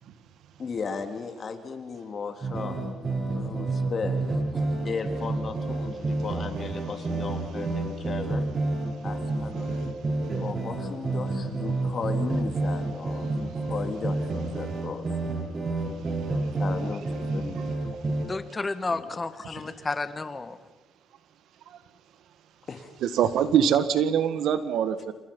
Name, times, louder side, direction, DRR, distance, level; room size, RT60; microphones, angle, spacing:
voice 1, 0.6-2.8 3.2-8.5 9.0-9.9 10.4-15.0 16.6-17.0 17.3-17.6 18.9-19.7 22.7-22.9, left 5 dB, 45° left, 6 dB, 3.4 m, -36 dB
sound 1, 2.4-18.3, right 2 dB, 40° right, 7.2 m, -29 dB
voice 2, 18.3-20.6, left 3 dB, 25° left, 11 dB, 1.9 m, -31 dB
voice 3, 23.0-25.1, right 8 dB, 80° right, 11 dB, 1.8 m, -24 dB
28.0 x 27.0 x 5.6 m, 1.1 s
cardioid pair, 90°, 0 cm